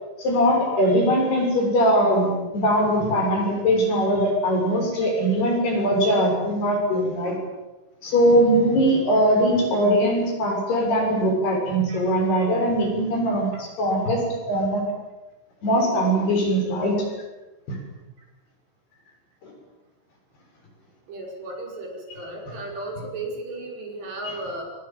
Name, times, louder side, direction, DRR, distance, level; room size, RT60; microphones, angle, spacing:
voice 1, 0.2-7.4 8.0-14.2 14.5-14.8 15.6-17.0 17.7-17.8 19.4-19.5 22.5-22.6 24.2-24.3, equal, 55° left, 1 dB, 8.7 m, -21 dB
voice 2, 21.1-24.6, right 2 dB, 65° right, 0 dB, 7.6 m, -35 dB
28.0 x 23.5 x 7.7 m, 1.1 s
omnidirectional pair, 5.4 m